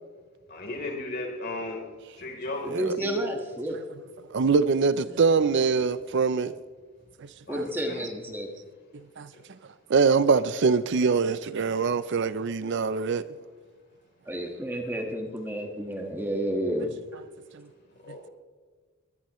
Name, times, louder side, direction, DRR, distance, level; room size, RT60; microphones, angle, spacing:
voice 1, 0.5-1.8 2.2-2.7 3.0-3.1 7.5-8.0 9.3-9.4 14.8-14.9 18.0-18.2, left 2 dB, 50° left, 3.6 m, -35 dB
voice 2, 2.6-3.8 7.5-8.5 14.3-16.9, right 1 dB, 10° right, 1.6 m, -30 dB
voice 3, 4.3-6.5 7.2-7.6 9.2-9.3 9.9-13.2 17.5-17.6, right 5 dB, 55° right, 0.5 m, -23 dB
22.0 x 19.5 x 3.1 m
head